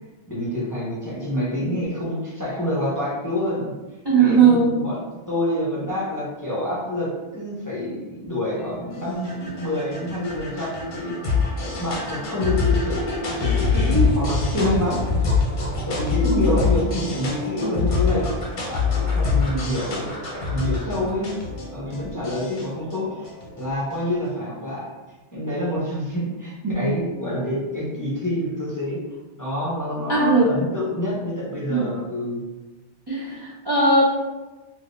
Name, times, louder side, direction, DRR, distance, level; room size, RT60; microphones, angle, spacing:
voice 1, 0.3-3.7 4.2-5.0 5.3-11.2 11.6-15.0 15.9-18.2 18.7-20.1 20.5-21.3 21.7-24.9 25.3-29.0 29.4-32.4, left 1 dB, 20° left, -7 dB, 0.6 m, -27 dB
voice 2, 4.0-4.7 16.2-16.4 26.6-26.9 30.1-30.5 31.7-31.9 33.1-34.0, right 4 dB, 35° right, -7 dB, 0.4 m, -18 dB
sound 1, 8.6-24.1, left 4 dB, 50° left, 0.8 m, -25 dB
3.5 x 2.6 x 2.5 m, 1.2 s
omnidirectional pair, 1.2 m